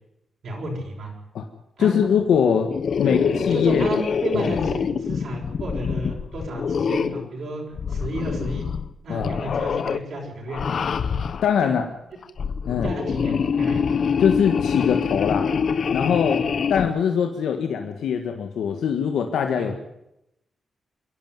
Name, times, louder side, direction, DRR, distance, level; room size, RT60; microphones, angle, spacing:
voice 1, 0.4-1.1 1.8-2.1 3.0-8.7 9.0-10.6 11.6-11.8 12.8-13.8 16.1-16.5 19.6-19.7, right 1 dB, 65° right, -2 dB, 6.5 m, -32 dB
voice 2, 1.8-2.7 3.0-3.9 4.3-4.6 9.1-9.3 11.4-11.8 12.7-13.0 14.2-15.5 15.9-16.4 16.7-19.7, left 7 dB, 85° left, 5 dB, 1.7 m, -22 dB
sound 1, 2.7-7.3 7.7-8.9 9.2-10.0 10.5-11.5 12.2-16.9, left 6 dB, 60° left, 1.0 m, -25 dB
27.0 x 11.5 x 9.4 m, 0.84 s
cardioid pair, 100°, 0 cm